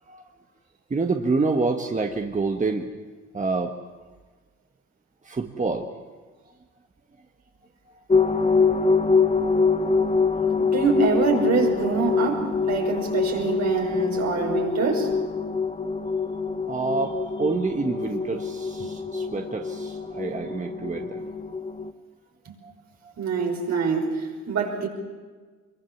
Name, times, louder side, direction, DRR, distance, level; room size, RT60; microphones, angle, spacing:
voice 1, 0.9-2.9 3.3-3.7 5.2-5.9 16.7-21.3 22.6-22.7, right 3 dB, 25° right, 3 dB, 1.5 m, -27 dB
sound 1, 8.1-21.9, left 4 dB, 20° left, 1.2 m, -25 dB
voice 2, 10.6-15.1 18.8-18.9 22.5-22.6 23.2-24.9, right 4 dB, 65° right, 2 dB, 5.4 m, -25 dB
24.0 x 23.0 x 7.3 m, 1.4 s
cardioid pair, 90°, 30 cm